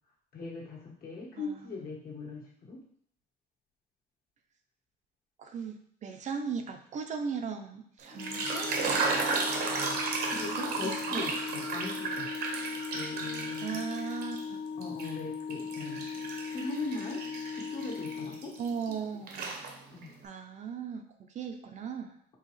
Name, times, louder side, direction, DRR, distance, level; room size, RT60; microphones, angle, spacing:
voice 1, 0.3-2.8 10.2-12.3 12.9-13.8 14.8-16.0 16.5-17.2 17.5-18.5 19.9-20.1, left 3 dB, 60° left, -4 dB, 1.6 m, -40 dB
voice 2, 1.4-1.7 5.4-8.7 10.5-11.3 13.6-14.6 18.6-19.5 20.2-22.2, right 6 dB, 45° right, 5 dB, 0.5 m, -38 dB
sound 1, 8.0-14.4 14.8-18.9 19.3-20.1, right 4 dB, 65° right, 0.8 m, -34 dB
Organ, 8.1-19.0, left 5 dB, 25° left, 0.5 m, -39 dB
4.7 x 3.2 x 3.2 m, 0.66 s
cardioid pair, 110°, 17 cm